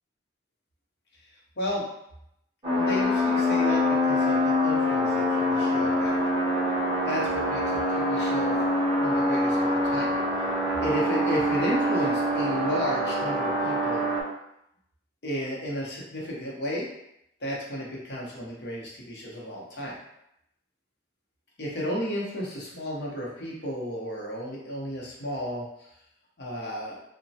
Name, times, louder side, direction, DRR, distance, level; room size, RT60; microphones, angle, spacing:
sound 1, 2.6-14.2, left 1 dB, 25° right, 0.7 m, -25 dB
voice 1, 2.7-6.2 7.0-8.6 9.0-10.2 10.8-14.0 15.2-16.9 17.4-20.0 21.6-25.6 26.4-27.0, equal, 60° left, -3 dB, 0.8 m, -33 dB
3.0 x 2.1 x 2.7 m, 0.78 s
head